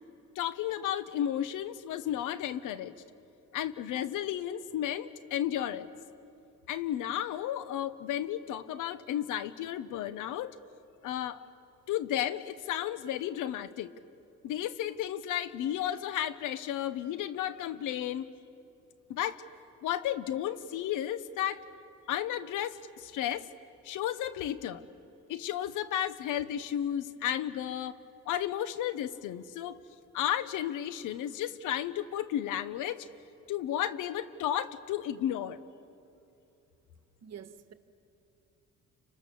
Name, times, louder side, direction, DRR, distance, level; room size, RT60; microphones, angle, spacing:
voice 1, 0.3-2.9 3.5-5.9 6.7-10.6 11.0-11.4 11.9-13.9 14.4-18.3 19.1-19.4 19.8-21.6 22.1-23.5 23.8-24.8 25.3-27.9 28.2-29.8 30.1-33.1 33.5-35.6, left 11 dB, 90° left, 1.1 m, -33 dB
voice 2, 37.2-37.7, right 8 dB, 60° right, 1.5 m, -46 dB
30.0 x 25.0 x 7.0 m
cardioid pair, 90°, 30 cm